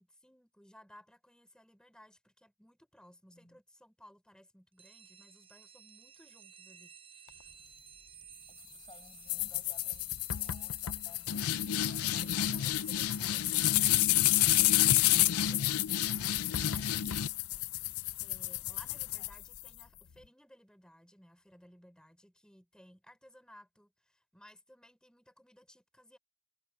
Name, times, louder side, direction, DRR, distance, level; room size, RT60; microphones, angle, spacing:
voice 1, 0.0-7.5 12.0-13.7 15.1-16.1 18.2-26.2, equal, 5° left, 4.6 m, -60 dB
voice 2, 3.3-3.6 8.5-11.6 18.6-18.8 19.2-19.3 20.1-20.3, left 2 dB, 20° left, 4.9 m, -61 dB
sound 1, 4.8-16.9, right 7 dB, 25° right, 7.2 m, -57 dB
sound 2, 9.3-19.8, left 13 dB, 85° left, 0.5 m, -29 dB
head